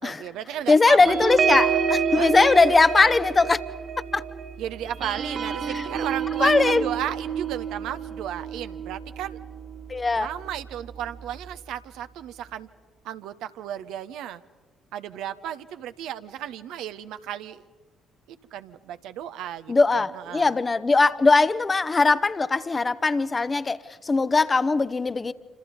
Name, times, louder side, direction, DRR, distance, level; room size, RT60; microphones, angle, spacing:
voice 1, 0.0-1.1 2.2-2.3 4.6-9.4 10.1-12.7 13.0-14.4 14.9-17.7 18.3-20.6, right 11 dB, 65° right, 11 dB, 0.9 m, -34 dB
voice 2, 0.7-3.6 4.1-4.2 5.7-5.8 6.4-6.8 9.9-10.3 19.7-25.3, left 3 dB, 30° left, 14 dB, 1.0 m, -20 dB
sound 1, 1.0-10.0 10.4-10.6 10.9-11.2, right 6 dB, 45° right, 2.1 m, -28 dB
28.0 x 26.5 x 5.3 m, 1.3 s
figure-of-eight pair, 45°, 0 cm